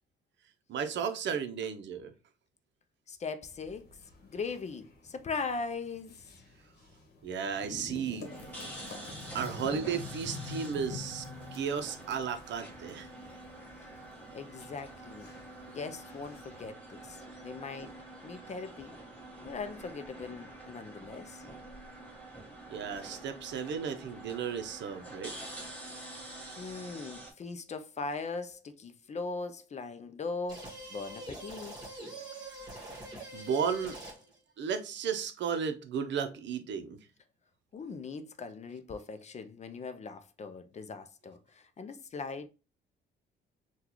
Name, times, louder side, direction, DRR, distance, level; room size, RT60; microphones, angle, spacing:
voice 1, 0.7-2.1 7.2-8.3 9.3-11.3 11.5-13.1 22.7-25.3 33.3-34.0 34.6-37.0, right 7 dB, 65° right, 0.6 m, -34 dB
voice 2, 3.1-3.9 4.2-6.3 14.3-15.3 15.7-18.0 18.2-19.0 19.4-21.4 26.6-31.8 37.7-42.5, left 4 dB, 35° left, 0.5 m, -40 dB
sound 1, 3.4-16.7, left 4 dB, 55° left, 1.1 m, -48 dB
sound 2, 8.2-27.3, right 1 dB, 5° left, 1.4 m, -47 dB
sound 3, 30.5-34.4, right 1 dB, 20° right, 1.6 m, -44 dB
3.7 x 2.3 x 2.9 m
cardioid pair, 90°, 20 cm